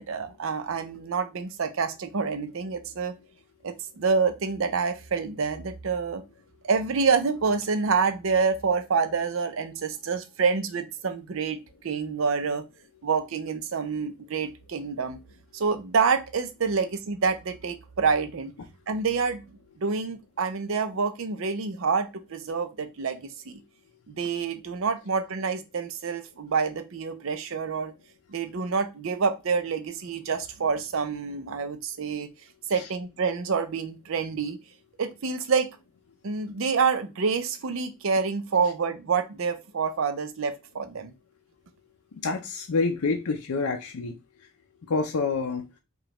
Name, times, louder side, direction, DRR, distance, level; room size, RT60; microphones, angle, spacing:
voice 1, 0.0-3.1 3.6-6.2 6.6-12.6 13.0-15.2 15.5-18.5 18.9-19.4 19.8-23.6 24.1-27.9 28.3-32.3 32.7-34.6 35.0-35.7 36.2-41.1, right 5 dB, 70° right, 0.5 m, -27 dB
voice 2, 42.2-44.1 44.9-45.6, left 4 dB, 85° left, 0.5 m, -27 dB
4.9 x 2.3 x 2.9 m
head